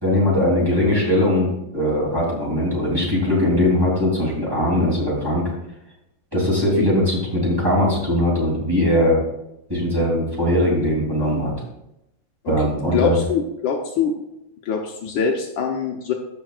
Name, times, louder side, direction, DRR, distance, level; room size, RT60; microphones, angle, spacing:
voice 1, 0.0-5.4 6.3-9.2 9.7-11.5 12.5-13.2, left 1 dB, 10° right, -5 dB, 3.0 m, -20 dB
voice 2, 12.4-14.1 14.6-16.1, left 6 dB, 70° left, 2 dB, 1.5 m, -24 dB
15.0 x 6.2 x 2.4 m, 0.86 s
omnidirectional pair, 2.3 m